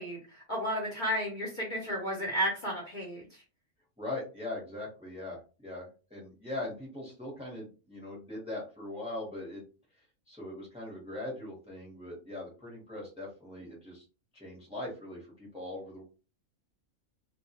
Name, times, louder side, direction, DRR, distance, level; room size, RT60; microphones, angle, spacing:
voice 1, 0.0-3.4, equal, 45° left, -3 dB, 0.7 m, -33 dB
voice 2, 4.0-9.6 10.3-14.0 14.3-16.0, left 2 dB, 5° right, -2 dB, 0.7 m, -40 dB
2.2 x 2.2 x 2.8 m, 0.34 s
omnidirectional pair, 1.4 m